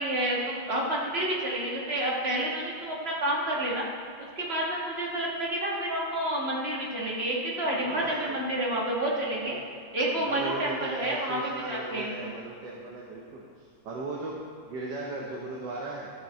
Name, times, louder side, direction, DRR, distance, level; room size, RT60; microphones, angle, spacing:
voice 1, 0.0-3.8 4.2-9.6 9.9-12.3, right 1 dB, 35° right, -3 dB, 1.6 m, -29 dB
voice 2, 7.7-8.4 9.4-9.6 10.1-16.1, right 3 dB, 65° right, -2 dB, 1.5 m, -37 dB
14.0 x 6.0 x 4.3 m, 2.3 s
omnidirectional pair, 2.2 m